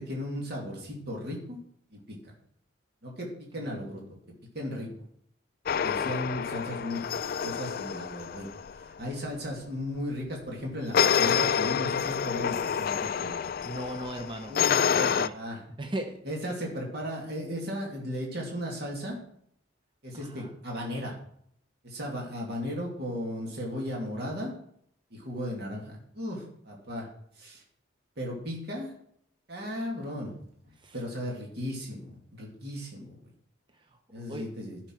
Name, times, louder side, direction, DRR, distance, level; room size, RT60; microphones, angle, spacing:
voice 1, 0.0-1.6 1.9-2.2 3.0-4.0 4.5-4.9 5.8-7.0 7.4-8.5 8.8-13.4 14.5-15.6 16.2-19.2 20.0-21.1 21.8-24.5 25.1-27.1 27.4-27.6 28.2-28.9 29.5-30.3 30.6-33.2 34.1-34.8, equal, 50° right, -2 dB, 2.5 m, -36 dB
sound 1, 5.7-8.8 10.9-15.3, left 7 dB, 45° left, 0.3 m, -28 dB
voice 2, 13.6-14.5 14.9-15.3 15.8-16.2 20.3-20.5 30.8-30.9 34.3-34.5, right 1 dB, 25° right, 5 dB, 0.9 m, -36 dB
11.5 x 6.0 x 4.6 m, 0.68 s
head